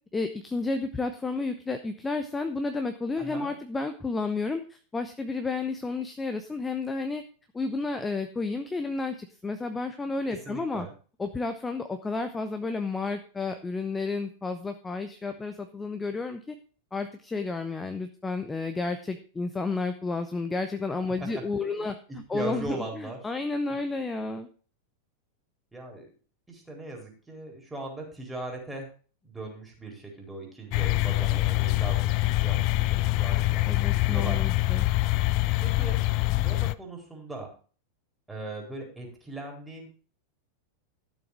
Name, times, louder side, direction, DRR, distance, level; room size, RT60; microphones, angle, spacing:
voice 1, 0.1-7.2 7.5-10.9 11.2-16.6 16.9-22.0 22.3-24.5 33.7-34.9, left 3 dB, 10° left, 7 dB, 0.9 m, -31 dB
voice 2, 3.2-3.6 10.4-10.9 21.2-23.2 25.7-26.1 26.5-28.9 29.2-34.4 35.6-36.0 36.3-37.5 38.3-39.9, right 2 dB, 5° right, -1 dB, 4.3 m, -39 dB
sound 1, 30.7-36.7, left 18 dB, 45° left, 0.5 m, -25 dB
12.5 x 7.2 x 4.8 m, 0.39 s
figure-of-eight pair, 90°, 0 cm